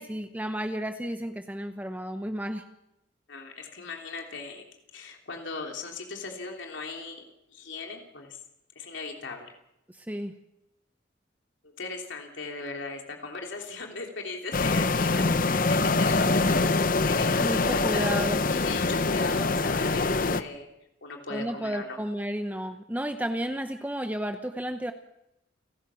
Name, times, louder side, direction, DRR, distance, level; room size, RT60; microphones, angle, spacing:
voice 1, 0.0-2.6 10.0-10.3 17.4-18.4 21.3-24.9, equal, 10° right, 7 dB, 0.8 m, -32 dB
voice 2, 3.3-4.6 4.9-7.2 7.5-8.4 8.7-9.5 11.6-16.8 17.1-18.1 18.5-20.7 21.0-22.0, left 4 dB, 80° left, 2 dB, 3.2 m, -38 dB
sound 1, 14.5-20.4, left 3 dB, 45° left, 0.8 m, -24 dB
30.0 x 12.5 x 7.1 m, 0.88 s
head